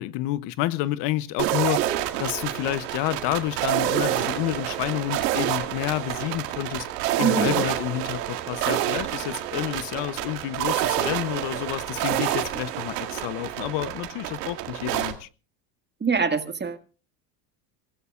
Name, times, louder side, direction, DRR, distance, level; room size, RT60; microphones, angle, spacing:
voice 1, 0.0-1.8 2.2-6.9 7.2-15.3, left 15 dB, 60° left, 0.8 m, -29 dB
sound 1, 1.4-15.1, right 13 dB, 85° right, 2.0 m, -28 dB
voice 2, 7.2-7.6 16.0-16.8, right 5 dB, 20° right, 1.8 m, -24 dB
25.5 x 17.0 x 2.4 m
supercardioid pair, 95°, 48 cm